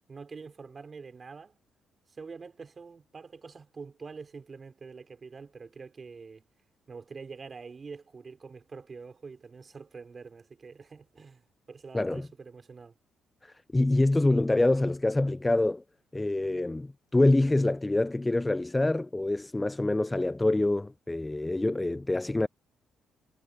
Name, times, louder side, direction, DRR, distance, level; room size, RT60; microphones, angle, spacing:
voice 1, 0.1-1.6 2.1-6.4 6.9-13.0, right 5 dB, 35° right, 3.7 m, -45 dB
voice 2, 11.9-12.3 13.4-15.8 16.1-22.5, left 2 dB, 15° left, 0.3 m, -26 dB
cardioid pair, 90°, 0 cm